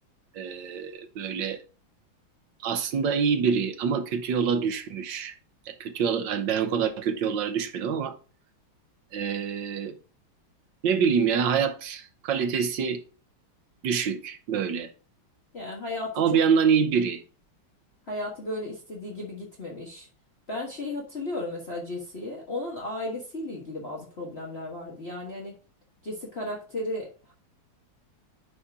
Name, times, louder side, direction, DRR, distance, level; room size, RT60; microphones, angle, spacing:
voice 1, 0.3-1.6 2.6-5.3 5.7-8.1 9.1-9.9 10.8-13.0 13.8-14.9 16.2-17.2, right 6 dB, 70° right, 1.5 m, -26 dB
voice 2, 15.5-16.4 18.1-20.1 20.5-25.5 26.0-27.3, left 2 dB, 35° left, 1.5 m, -35 dB
10.0 x 4.1 x 3.6 m
omnidirectional pair, 2.3 m